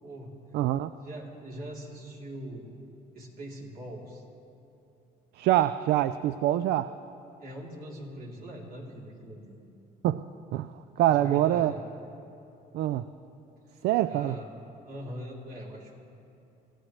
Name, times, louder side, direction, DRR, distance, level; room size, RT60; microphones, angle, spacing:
voice 1, 0.0-0.3 1.0-2.7 3.1-4.2 7.4-9.6 11.0-11.8 13.7-14.5 14.9-15.9, right 1 dB, 60° right, -2 dB, 3.5 m, -42 dB
voice 2, 0.5-0.9 5.4-7.0 10.0-10.2 10.5-11.7 12.7-13.1 13.8-14.4, right 13 dB, 75° right, 13 dB, 0.4 m, -25 dB
26.5 x 16.0 x 3.2 m, 2.8 s
cardioid pair, 110°, 17 cm